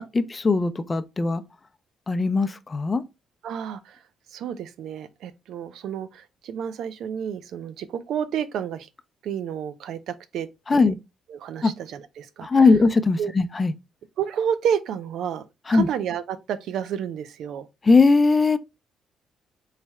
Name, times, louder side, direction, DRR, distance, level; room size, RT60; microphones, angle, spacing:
voice 1, 0.0-1.4 2.1-3.0 10.7-11.0 11.6-11.7 12.4-13.7 15.7-15.9 17.8-18.6, left 4 dB, 25° left, 0.5 m, -19 dB
voice 2, 3.4-4.0 4.3-8.9 9.2-10.9 11.3-12.6 13.2-13.3 14.2-17.7, right 8 dB, 75° right, 0.5 m, -30 dB
4.1 x 3.3 x 3.5 m
cardioid pair, 90°, 0 cm